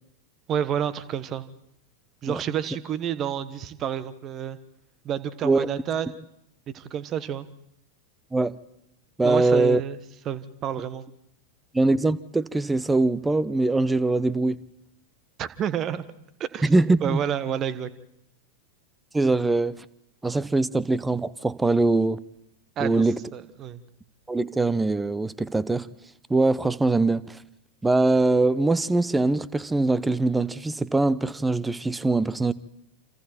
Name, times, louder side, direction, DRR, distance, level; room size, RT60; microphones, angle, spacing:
voice 1, 0.5-1.5 2.2-4.6 5.0-6.2 6.7-7.5 9.2-10.0 10.2-11.0 15.4-16.0 16.4-16.7 17.0-17.9 22.8-23.0 23.3-23.8, right 9 dB, 30° right, 1.2 m, -29 dB
voice 2, 9.2-9.8 11.7-14.7 16.6-17.2 19.1-19.8 20.2-22.2 22.8-23.2 24.3-25.9 26.3-27.4 27.8-32.5, right 2 dB, 10° right, 0.7 m, -22 dB
28.0 x 27.5 x 4.5 m
figure-of-eight pair, 90°, 0 cm